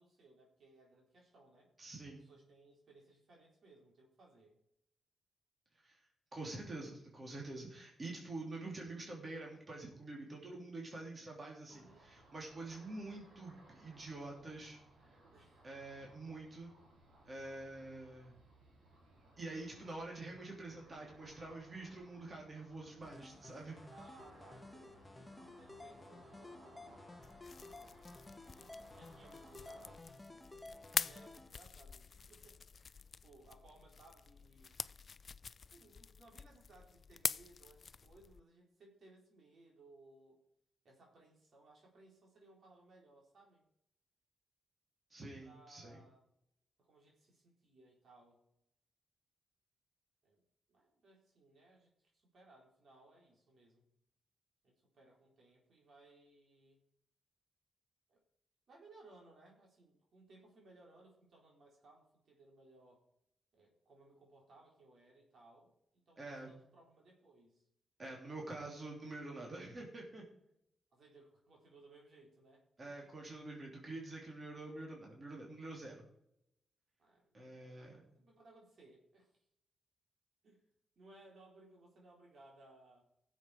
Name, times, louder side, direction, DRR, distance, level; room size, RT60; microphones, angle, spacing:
voice 1, 0.0-1.7 2.1-4.6 11.7-12.1 15.3-15.7 16.1-16.5 23.9-26.6 28.9-30.5 31.0-34.9 35.6-40.4 40.8-43.6 45.4-46.2 46.8-48.4 50.2-50.4 50.7-53.9 54.6-56.8 58.1-58.2 58.7-63.0 63.5-67.6 70.9-73.1 77.0-77.8 78.1-79.3 80.4-80.6 81.0-83.0, right 2 dB, 65° right, -1 dB, 3.9 m, -63 dB
voice 2, 1.8-2.2 5.8-6.0 6.3-15.2 15.6-16.7 17.3-18.4 19.4-23.8 45.1-46.0 66.2-66.5 68.0-70.2 72.8-76.0 77.3-78.0, right 2 dB, 40° right, -1 dB, 3.3 m, -47 dB
Ocean, 11.7-29.9, right 1 dB, 85° right, 3.5 m, -63 dB
sound 1, 23.0-31.5, left 2 dB, 15° left, 1.1 m, -54 dB
sound 2, 27.2-38.4, left 5 dB, 50° left, 0.3 m, -45 dB
16.0 x 7.4 x 4.9 m, 0.77 s
cardioid pair, 75°, 0 cm